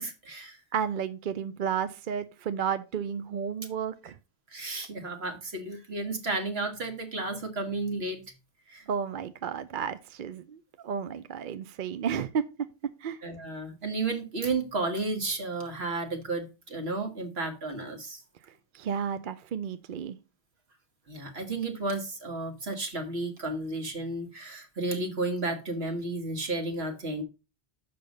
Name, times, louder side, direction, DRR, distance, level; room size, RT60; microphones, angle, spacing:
voice 1, 0.0-0.6 4.5-8.2 8.7-8.9 13.2-18.2 21.1-27.2, right 2 dB, 75° right, 1.8 m, -32 dB
voice 2, 0.7-4.1 8.9-12.5 13.0-13.2 18.7-20.2, right 7 dB, 60° right, 0.7 m, -32 dB
6.8 x 5.6 x 5.1 m
omnidirectional pair, 1.1 m